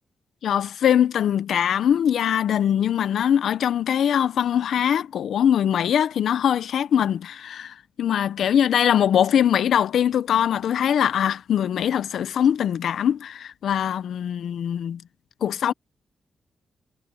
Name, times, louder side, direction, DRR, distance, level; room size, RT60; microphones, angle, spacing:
voice 1, 0.4-15.0 15.4-15.7, left 9 dB, 80° left, 0.7 m, -22 dB
wide cardioid pair, 180°, 0 cm